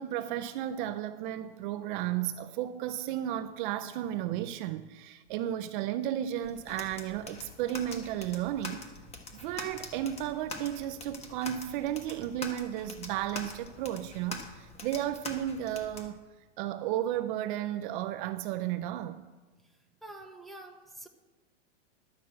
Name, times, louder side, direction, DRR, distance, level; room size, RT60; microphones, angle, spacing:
voice 1, 0.0-8.8 9.4-16.2 16.6-19.3, right 12 dB, 45° right, 0.5 m, -33 dB
sound 1, 6.4-16.1, left 3 dB, 20° left, 1.2 m, -44 dB
voice 2, 20.0-21.1, right 1 dB, ahead, 0.9 m, -46 dB
11.5 x 6.1 x 7.4 m
supercardioid pair, 135°, 35 cm